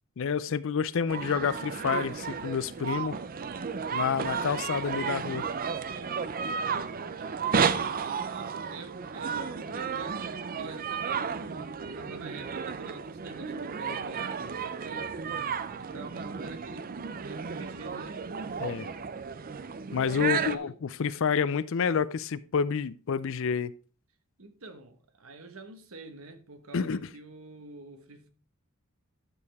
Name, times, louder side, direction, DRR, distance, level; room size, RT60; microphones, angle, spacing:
voice 1, 0.2-3.2 3.9-5.5 18.6-18.9 19.9-23.7 26.7-27.0, left 6 dB, 60° left, 0.5 m, -29 dB
sound 1, 1.1-20.6, right 6 dB, 40° right, 0.5 m, -33 dB
voice 2, 7.5-15.2 15.7-18.3 19.9-20.7 24.4-28.3, right 2 dB, 70° right, 1.3 m, -47 dB
11.0 x 6.6 x 3.5 m
head